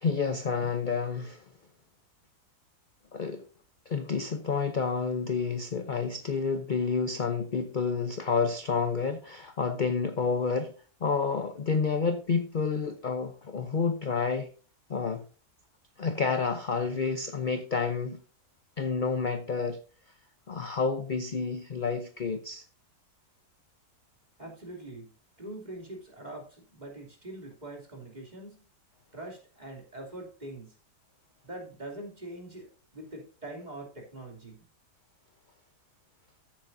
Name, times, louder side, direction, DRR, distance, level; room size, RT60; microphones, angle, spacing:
voice 1, 0.0-1.4 3.1-3.4 3.9-10.7 11.0-14.5 14.9-15.2 16.0-18.2 18.8-19.8 20.5-22.6, left 5 dB, 45° left, 0.7 m, -29 dB
voice 2, 24.4-25.1 25.4-28.7 29.1-30.7 31.4-34.6, right 1 dB, 25° right, 3.1 m, -43 dB
14.0 x 8.5 x 2.7 m
omnidirectional pair, 1.7 m